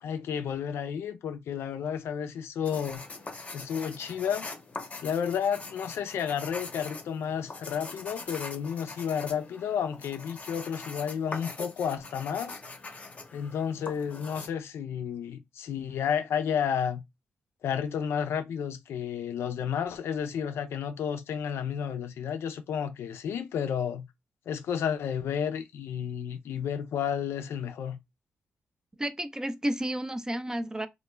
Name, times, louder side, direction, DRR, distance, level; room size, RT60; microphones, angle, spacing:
voice 1, 0.0-3.0 3.5-4.5 5.0-12.6 13.3-17.0 17.6-24.1 24.5-28.0, left 8 dB, 75° left, 0.4 m, -31 dB
sound 1, 2.7-14.5, left 3 dB, 35° left, 0.6 m, -43 dB
voice 2, 29.0-30.9, right 1 dB, 15° right, 0.3 m, -31 dB
2.1 x 2.1 x 3.2 m
cardioid pair, 70°, 4 cm